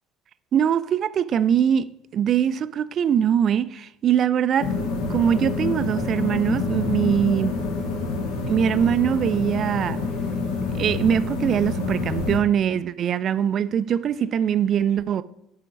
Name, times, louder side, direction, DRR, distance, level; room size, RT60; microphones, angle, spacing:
voice 1, 0.5-4.7 5.1-7.6 8.5-10.0 10.7-15.2, right 9 dB, 45° right, 0.3 m, -22 dB
sound 1, 4.6-12.4, left 4 dB, 65° left, 1.1 m, -27 dB
7.4 x 4.2 x 5.1 m
figure-of-eight pair, 60°, 0 cm